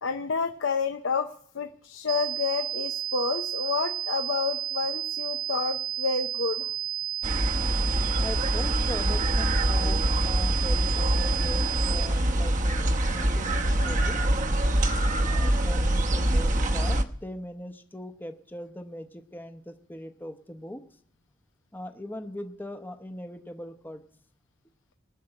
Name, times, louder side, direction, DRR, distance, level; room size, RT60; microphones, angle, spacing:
voice 1, 0.0-6.7, left 5 dB, 80° left, 7 dB, 0.7 m, -29 dB
sound 1, 2.1-12.1, right 11 dB, 80° right, 1.1 m, -32 dB
sound 2, 7.2-17.0, right 1 dB, 40° right, 0.9 m, -25 dB
voice 2, 8.2-14.2 15.2-20.8 21.7-24.0, left 1 dB, 10° left, 6 dB, 0.8 m, -40 dB
20.0 x 6.8 x 8.8 m, 0.64 s
head